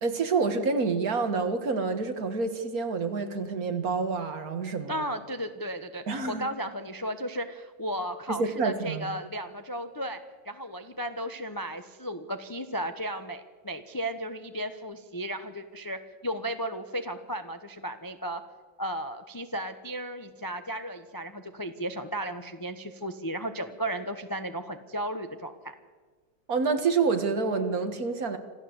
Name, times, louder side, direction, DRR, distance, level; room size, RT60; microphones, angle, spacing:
voice 1, 0.0-5.1 6.1-6.5 8.3-9.1 26.5-28.4, right 4 dB, 50° right, 8 dB, 2.0 m, -28 dB
voice 2, 4.9-10.2 10.4-18.4 18.8-25.7, right 1 dB, 20° left, 8 dB, 0.6 m, -35 dB
26.5 x 15.0 x 8.0 m, 1.5 s
omnidirectional pair, 2.0 m